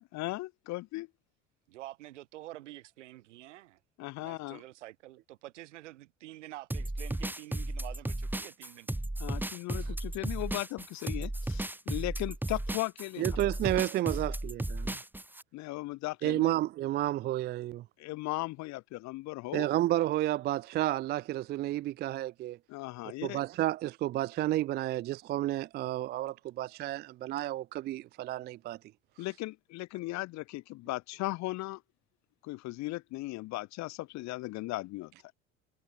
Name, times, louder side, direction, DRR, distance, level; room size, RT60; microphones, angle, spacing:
voice 1, 0.1-1.1 4.0-4.6 9.2-13.4 15.5-16.5 18.0-19.7 22.7-23.4 29.2-31.8 32.4-35.1, left 20 dB, 50° left, 0.8 m, -37 dB
voice 2, 1.7-3.8 4.2-8.9, right 16 dB, 70° right, 5.6 m, -48 dB
sound 1, 6.7-15.4, right 1 dB, 5° right, 1.5 m, -35 dB
voice 3, 13.2-15.0 16.2-17.8 19.5-22.6 23.2-28.8, right 15 dB, 30° right, 0.3 m, -31 dB
figure-of-eight pair, 65°, 37 cm